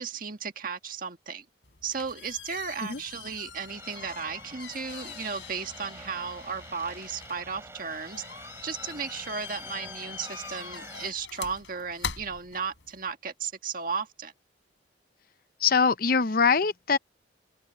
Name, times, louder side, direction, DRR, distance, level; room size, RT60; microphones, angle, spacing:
voice 1, 0.0-1.4 1.8-8.3 8.6-14.3, right 5 dB, 50° right, 1.7 m, -35 dB
sound 1, 1.6-13.1, left 7 dB, 80° left, 7.3 m, -43 dB
sound 2, 3.7-11.1, right 2 dB, 15° right, 3.7 m, -47 dB
voice 2, 15.6-17.0, left 5 dB, 50° left, 0.7 m, -23 dB
head